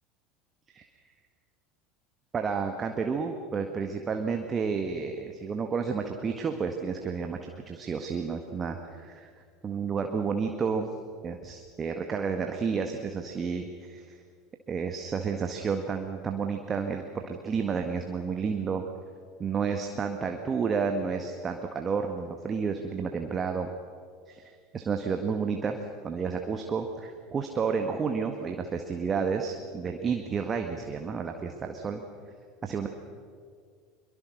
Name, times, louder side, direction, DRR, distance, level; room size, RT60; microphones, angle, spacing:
voice 1, 2.3-9.3 9.6-11.0 11.2-14.2 14.7-18.8 19.4-23.7 24.3-25.8 26.0-32.0 32.6-32.9, right 5 dB, 25° right, 5 dB, 1.7 m, -31 dB
23.0 x 23.0 x 6.6 m, 2.1 s
figure-of-eight pair, 75°, 0 cm